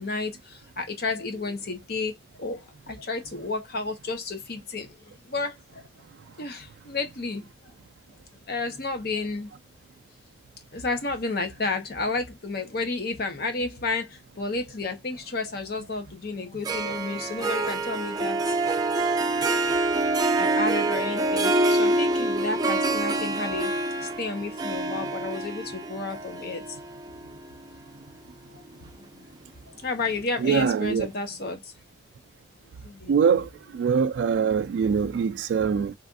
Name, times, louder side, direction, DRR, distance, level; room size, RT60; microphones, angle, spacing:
voice 1, 0.0-5.8 6.4-7.4 8.5-9.5 10.7-18.4 19.8-20.1 20.4-23.7 24.0-26.8 28.5-29.3 29.7-31.7 32.8-33.4 35.5-35.7, left 3 dB, 60° left, 0.9 m, -32 dB
Harp, 16.6-28.1, right 2 dB, 20° right, 0.4 m, -26 dB
voice 2, 30.4-31.1 33.1-33.5 33.7-35.9, right 6 dB, 90° right, 0.3 m, -23 dB
3.3 x 2.4 x 2.4 m
head